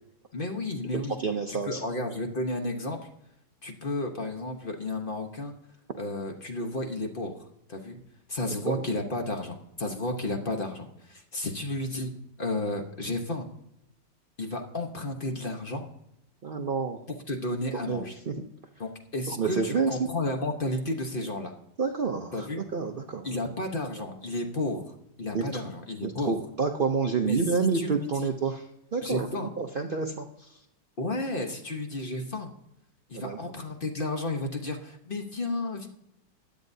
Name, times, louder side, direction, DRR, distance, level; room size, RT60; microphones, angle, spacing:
voice 1, 0.3-1.2 1.5-3.0 3.6-5.5 6.0-8.0 8.3-12.1 12.4-13.5 14.4-15.9 17.1-18.2 18.8-21.5 22.3-22.6 23.2-26.4 27.3-27.4 27.7-28.3 29.0-29.5 31.0-32.5 33.1-35.9, left 2 dB, 35° left, 4 dB, 1.0 m, -32 dB
voice 2, 0.9-1.8 8.7-8.8 16.4-17.0 17.7-18.5 19.4-20.1 21.8-23.3 25.3-25.5 26.0-28.6 28.9-30.6 33.1-33.4, right 5 dB, 90° right, 4 dB, 0.4 m, -29 dB
15.5 x 10.5 x 2.7 m, 0.82 s
omnidirectional pair, 2.0 m